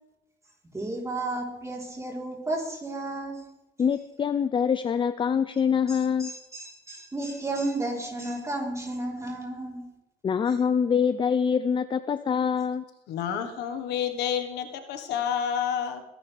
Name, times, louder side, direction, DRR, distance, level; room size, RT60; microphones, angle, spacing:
voice 1, 0.7-3.4 5.9-9.9, right 2 dB, 15° right, -1 dB, 4.0 m, -33 dB
voice 2, 3.8-6.3 10.2-12.8, left 7 dB, 30° left, 12 dB, 0.5 m, -25 dB
voice 3, 13.1-16.0, left 8 dB, 80° left, 7 dB, 1.5 m, -29 dB
21.5 x 11.0 x 3.5 m, 0.96 s
cardioid pair, 110°, 17 cm